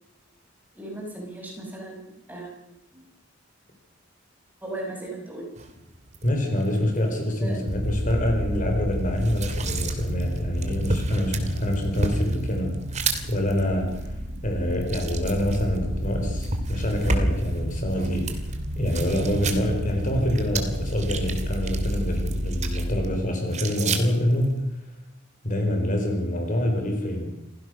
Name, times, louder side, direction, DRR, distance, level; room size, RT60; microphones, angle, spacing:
voice 1, 0.7-3.0 4.6-5.5 7.4-7.6, right 1 dB, 10° right, -1 dB, 6.3 m, -37 dB
sound 1, 5.6-24.6, right 3 dB, 35° right, 2.5 m, -34 dB
voice 2, 6.2-14.1 14.4-18.4 18.8-24.7 25.4-27.3, left 1 dB, 40° left, 3 dB, 4.4 m, -26 dB
sound 2, 7.7-23.2, equal, 70° right, 2.9 m, -31 dB
27.5 x 16.5 x 6.4 m, 0.90 s
head